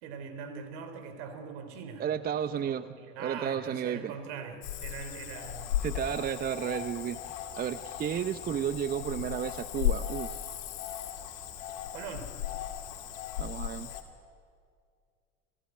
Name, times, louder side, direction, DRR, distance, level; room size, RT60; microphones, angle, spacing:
voice 1, 0.0-2.0 2.7-5.8 11.9-12.3, right 6 dB, 60° right, 8 dB, 3.1 m, -42 dB
voice 2, 2.0-2.9 3.2-4.1 5.8-7.2 7.6-10.5 13.4-13.9, right 8 dB, 25° right, 14 dB, 0.6 m, -32 dB
Cricket / Frog, 4.6-14.0, left 12 dB, 65° left, 2.5 m, -36 dB
27.0 x 14.5 x 9.6 m, 2.3 s
figure-of-eight pair, 70°, 37 cm